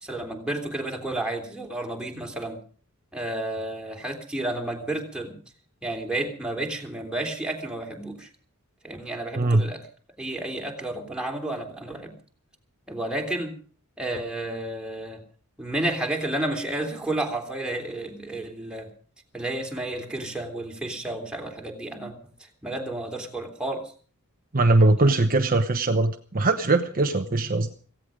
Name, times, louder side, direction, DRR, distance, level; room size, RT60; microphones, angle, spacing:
voice 1, 0.0-2.6 3.1-5.4 5.8-8.3 8.8-9.8 10.2-12.1 12.9-13.5 14.0-15.2 15.6-18.9 19.3-22.1 22.4-23.9 25.0-25.2, right 1 dB, 5° right, 2 dB, 3.4 m, -31 dB
voice 2, 24.5-27.7, right 2 dB, 40° right, 6 dB, 0.9 m, -21 dB
17.0 x 16.5 x 5.1 m, 0.42 s
head